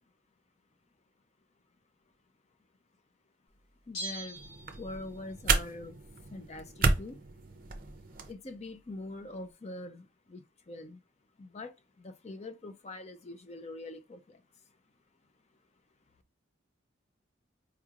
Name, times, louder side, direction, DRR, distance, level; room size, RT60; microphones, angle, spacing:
Bell, 3.9-5.3 5.6-5.7, right 1 dB, 55° left, 1.9 m, -42 dB
voice 1, 3.9-4.4 4.8-6.0 6.3-7.2 8.3-11.0 11.4-14.4, left 2 dB, 35° left, 0.5 m, -44 dB
sound 1, 4.4-8.3, right 4 dB, 45° right, 0.5 m, -32 dB
4.7 x 3.0 x 2.4 m
head